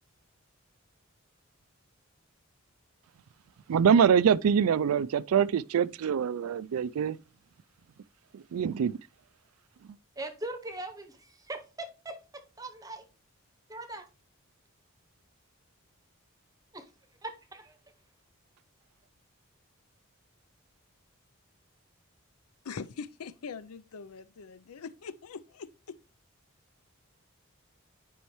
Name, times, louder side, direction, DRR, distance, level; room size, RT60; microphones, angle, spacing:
voice 1, 3.7-7.2 8.3-9.0, right 7 dB, 80° right, 0.3 m, -24 dB
voice 2, 10.2-13.1 13.7-14.0 16.7-16.9 17.2-17.8, right 2 dB, 15° right, 0.8 m, -41 dB
voice 3, 22.6-26.0, left 5 dB, 85° left, 0.5 m, -42 dB
10.0 x 5.5 x 3.1 m
head